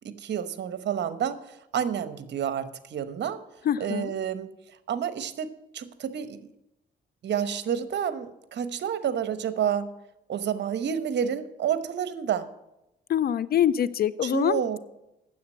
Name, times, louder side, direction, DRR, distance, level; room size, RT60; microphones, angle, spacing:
voice 1, 0.0-3.4 3.8-4.5 4.9-5.5 5.7-6.5 7.2-9.9 10.3-12.5 14.2-14.8, right 8 dB, 60° right, 12 dB, 1.0 m, -29 dB
voice 2, 3.6-4.1 13.1-14.6, left 10 dB, 50° left, 18 dB, 0.4 m, -24 dB
9.5 x 7.8 x 7.7 m, 0.87 s
cardioid pair, 90°, 20 cm